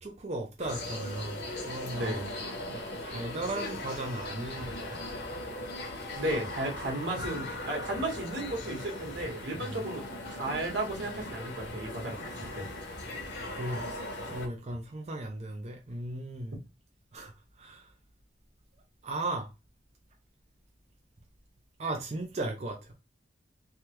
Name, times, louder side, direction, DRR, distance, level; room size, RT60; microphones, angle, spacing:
voice 1, 0.0-2.3 2.7-5.0 9.6-9.8 13.6-13.8 14.3-16.6 17.1-17.3 17.6-17.9 19.0-19.5 21.8-22.9, right 2 dB, 35° right, 0.5 m, -36 dB
sound 1, 0.6-14.5, left 1 dB, 70° left, 1.0 m, -39 dB
voice 2, 1.9-2.3 6.1-10.0 10.3-12.7, right 1 dB, 75° right, 1.4 m, -34 dB
3.4 x 2.2 x 2.9 m
head